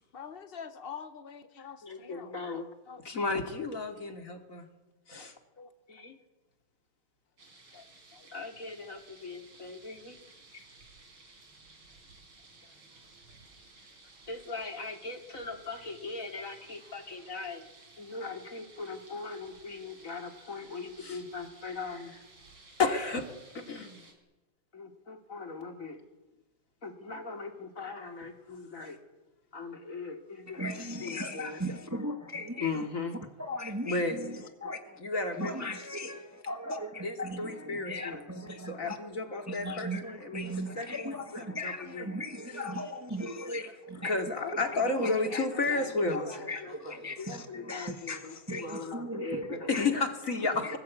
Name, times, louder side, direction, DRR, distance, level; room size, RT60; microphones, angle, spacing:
voice 1, 0.1-3.0 5.1-5.3 5.6-5.7 7.7-7.9 8.1-8.4, left 7 dB, 55° left, 0.6 m, -46 dB
voice 2, 1.8-2.7 3.0-4.7 5.1-5.4 5.9-6.2 8.3-10.2 10.5-10.6 14.3-17.7 18.0-22.2 22.8-23.3 23.5-24.0 24.7-26.0 26.8-29.0 29.5-30.6 31.0-31.6 32.6-33.2 33.8-34.2 35.0-35.7 37.0-38.3 38.7-40.4 40.8-42.1 44.0-50.8, left 3 dB, 35° left, 2.8 m, -35 dB
sound 1, 7.4-24.1, right 3 dB, 70° right, 5.0 m, -56 dB
voice 3, 30.5-32.9 33.4-39.2 39.5-44.2 44.5-44.7 45.0-49.9 50.4-50.8, left 1 dB, 10° right, 1.3 m, -38 dB
25.0 x 20.0 x 8.5 m
omnidirectional pair, 2.4 m